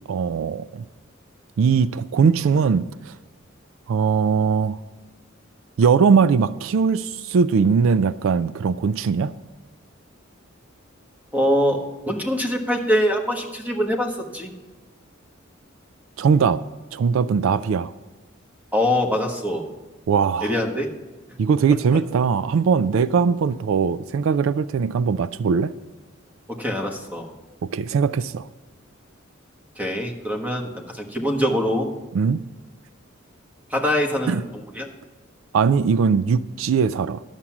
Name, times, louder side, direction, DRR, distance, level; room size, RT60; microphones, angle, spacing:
voice 1, 0.1-0.8 1.6-3.1 3.9-4.8 5.8-9.3 16.2-16.6 16.9-17.9 20.1-20.5 21.4-25.7 27.7-28.5 32.1-32.4 34.3-34.4 35.5-37.2, right 6 dB, 75° right, 16 dB, 0.3 m, -20 dB
voice 2, 11.3-14.5 18.7-19.6 20.4-20.9 26.5-27.3 29.8-31.9 33.7-34.4 34.7-34.9, equal, 10° right, 2 dB, 1.3 m, -23 dB
11.0 x 7.4 x 5.9 m, 1.2 s
head